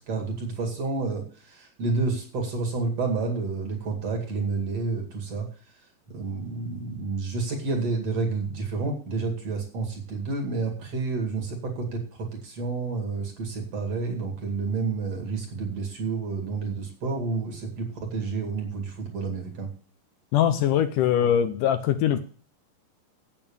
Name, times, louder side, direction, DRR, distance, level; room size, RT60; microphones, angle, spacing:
voice 1, 0.0-5.5 6.1-19.7, right 4 dB, 50° right, 2 dB, 3.1 m, -30 dB
voice 2, 20.3-22.2, left 10 dB, 75° left, 9 dB, 2.2 m, -22 dB
8.8 x 8.5 x 7.0 m, 0.41 s
omnidirectional pair, 4.1 m